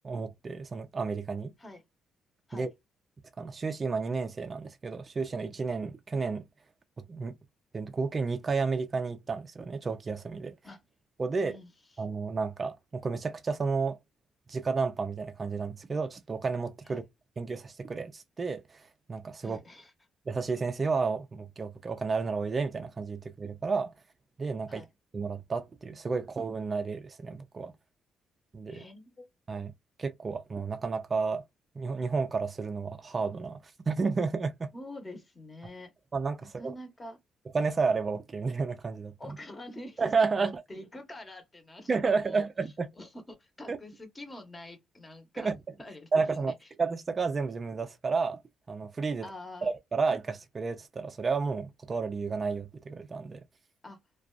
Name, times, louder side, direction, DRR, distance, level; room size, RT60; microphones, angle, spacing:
voice 1, 0.0-1.5 2.5-2.7 3.4-6.5 7.1-7.3 7.7-10.6 11.2-11.6 12.0-14.0 14.5-17.0 17.4-19.6 20.3-23.9 24.4-24.8 25.1-27.7 28.5-28.8 29.5-29.7 30.0-31.4 31.8-33.6 33.9-34.7 36.1-36.7 37.5-39.1 40.0-40.6 41.9-42.9 43.7-43.8 45.4-45.6 46.1-46.5 46.8-48.4 48.7-49.3 49.6-53.4, right 4 dB, 35° right, 0.3 m, -31 dB
voice 2, 11.4-12.0 16.8-17.0 19.4-19.9 24.7-24.9 28.7-29.3 34.7-35.9 36.4-37.2 39.2-40.0 40.4-42.5 42.9-45.5 45.8-46.7 49.2-49.7 53.8-54.0, left 1 dB, 25° left, 1.0 m, -46 dB
2.4 x 2.2 x 2.3 m
cardioid pair, 90°, 0 cm